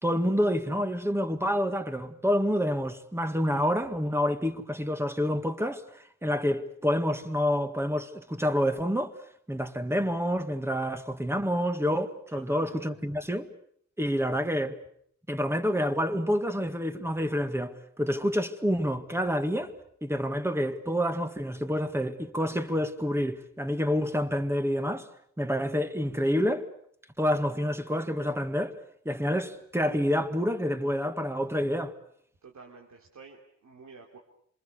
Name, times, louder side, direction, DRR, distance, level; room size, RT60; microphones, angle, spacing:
voice 1, 0.0-9.1 9.5-13.5 14.0-14.8 15.3-19.7 20.0-25.1 25.4-26.7 27.2-28.7 29.1-31.9, equal, 10° right, 1.9 m, -28 dB
voice 2, 12.3-13.2 32.4-34.2, right 4 dB, 70° right, 3.5 m, -50 dB
27.0 x 26.5 x 6.8 m
wide cardioid pair, 110°, 29 cm